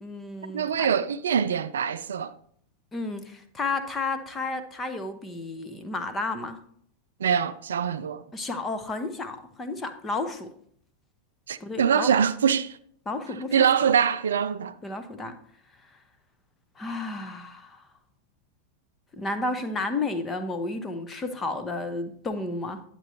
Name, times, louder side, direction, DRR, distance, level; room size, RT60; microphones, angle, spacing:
voice 1, 0.0-0.9 2.9-6.6 8.3-10.5 11.6-12.1 13.1-13.6 14.8-15.4 16.8-17.9 19.1-22.8, left 3 dB, 15° left, 0.9 m, -32 dB
voice 2, 0.5-2.3 7.2-8.2 11.5-12.8 13.5-14.8, right 7 dB, 65° right, 0.3 m, -24 dB
10.0 x 7.6 x 2.8 m
figure-of-eight pair, 90°, 0 cm